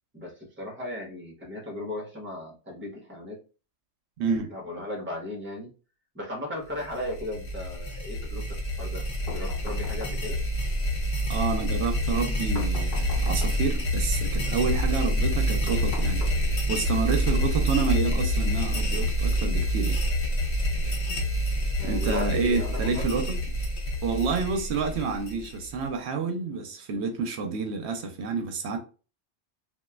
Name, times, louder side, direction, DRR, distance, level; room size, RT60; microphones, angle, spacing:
voice 1, 0.1-3.4 4.5-5.7 6.1-9.0 9.3-10.4 21.8-23.0, left 1 dB, 10° right, 0.8 m, -36 dB
voice 2, 4.2-4.5 11.3-16.3 16.7-20.0 21.8-23.3 24.0-28.8, right 5 dB, 75° right, 0.8 m, -29 dB
sound 1, 6.8-25.9, equal, 70° left, 1.1 m, -27 dB
sound 2, 9.3-10.5 12.5-13.8 15.7-16.8, left 3 dB, 50° left, 0.8 m, -41 dB
3.0 x 2.4 x 2.3 m
omnidirectional pair, 1.1 m